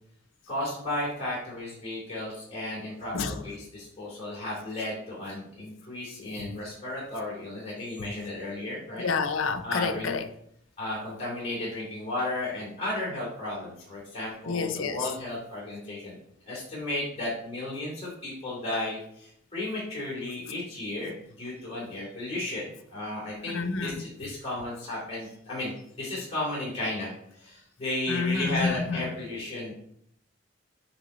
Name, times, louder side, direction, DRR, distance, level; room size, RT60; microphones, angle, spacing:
voice 1, 0.5-9.1 9.6-10.2 10.8-16.2 16.4-29.7, left 1 dB, 30° left, 2.9 m, -34 dB
voice 2, 9.0-10.3 14.5-15.1 23.5-24.0 28.1-29.0, left 4 dB, 75° left, 0.6 m, -29 dB
8.1 x 3.7 x 4.3 m
head